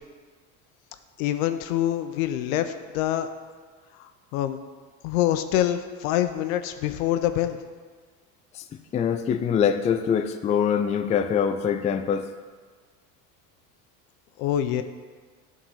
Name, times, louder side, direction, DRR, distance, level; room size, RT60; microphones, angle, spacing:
voice 1, 1.2-3.3 4.0-4.6 5.0-7.6 14.4-14.8, left 12 dB, 80° left, 9 dB, 0.7 m, -25 dB
voice 2, 8.9-12.3, left 7 dB, 20° left, 8 dB, 0.3 m, -24 dB
9.1 x 3.9 x 5.5 m, 1.5 s
supercardioid pair, 95°, 41 cm